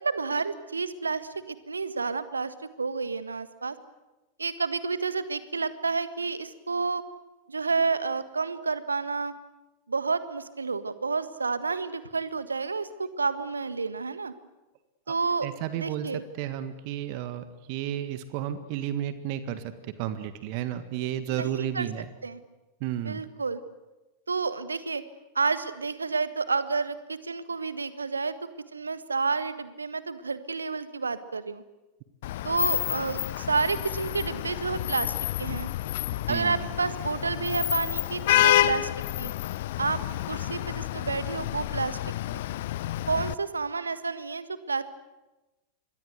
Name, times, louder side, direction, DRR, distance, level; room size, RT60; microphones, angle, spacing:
voice 1, 0.0-3.8 4.4-7.0 7.5-9.3 9.9-14.3 15.1-16.2 21.3-21.9 22.2-22.4 23.0-23.6 24.3-25.0 25.3-28.3 28.7-31.6 32.4-35.7 36.3-38.9 39.2-39.3 39.8-40.0 40.3-42.0 42.3-42.4 43.1-44.8, right 4 dB, 75° right, 13 dB, 1.6 m, -30 dB
voice 2, 15.4-16.1 16.4-19.7 20.0-22.0 22.8-23.2 36.3-36.6, right 11 dB, 45° right, 11 dB, 1.7 m, -32 dB
Vehicle horn car horn honking / Traffic noise roadway noise, 32.2-43.3, left 14 dB, 55° left, 0.8 m, -29 dB
26.5 x 22.5 x 8.1 m, 1.1 s
figure-of-eight pair, 90°, 0 cm